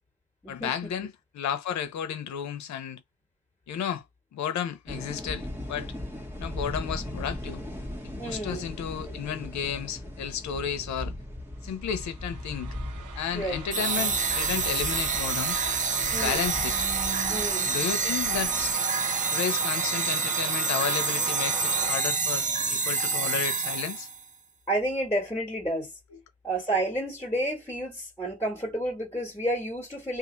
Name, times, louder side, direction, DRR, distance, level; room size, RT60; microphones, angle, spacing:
voice 1, 0.5-3.0 3.7-4.0 4.3-5.9 6.4-7.6 8.2-11.1 11.6-12.8 13.1-15.6 16.1-16.7 17.6-18.8 19.3-24.1, left 8 dB, 65° left, 0.9 m, -32 dB
sound 1, 4.9-18.7, left 1 dB, 5° right, 1.3 m, -39 dB
voice 2, 8.2-8.7 13.3-13.6 16.1-16.5 17.3-17.7 24.7-25.9 26.4-30.2, right 1 dB, 10° left, 1.8 m, -30 dB
sound 2, 11.9-21.9, right 7 dB, 85° right, 1.0 m, -38 dB
sound 3, 13.7-24.2, right 4 dB, 25° right, 0.5 m, -27 dB
2.8 x 2.5 x 3.9 m
cardioid pair, 90°, 30 cm